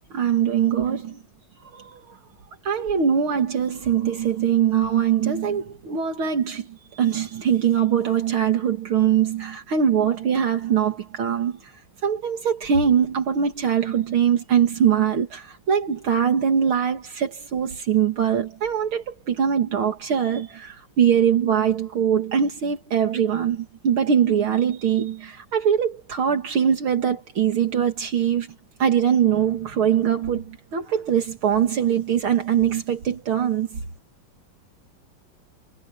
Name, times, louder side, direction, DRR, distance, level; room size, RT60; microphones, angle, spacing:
voice 1, 0.1-1.2 1.7-2.2 2.6-6.7 7.0-11.6 12.0-28.5 28.8-33.8, right 8 dB, 75° right, 2.8 m, -22 dB
omnidirectional pair, 2.3 m